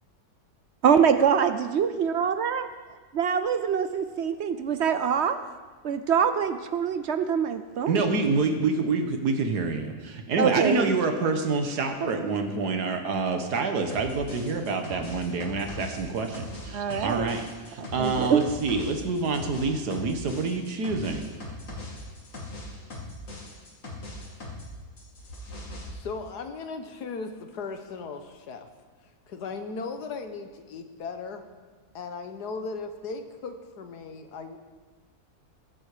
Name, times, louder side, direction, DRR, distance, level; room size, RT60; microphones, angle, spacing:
voice 1, 0.8-2.7 3.1-5.4 5.8-8.3 10.4-10.9 16.7-17.3 17.8-18.4, right 7 dB, 60° right, 10 dB, 0.7 m, -24 dB
voice 2, 7.9-17.4 17.7-21.3, right 3 dB, 90° right, 5 dB, 1.8 m, -27 dB
sound 1, 13.9-24.7 25.0-25.9, left 2 dB, 55° left, 2.6 m, -40 dB
voice 3, 25.9-28.7 29.3-31.4 31.9-34.6, left 4 dB, 85° left, 7 dB, 1.7 m, -37 dB
21.5 x 7.7 x 5.0 m, 1.4 s
omnidirectional pair, 1.7 m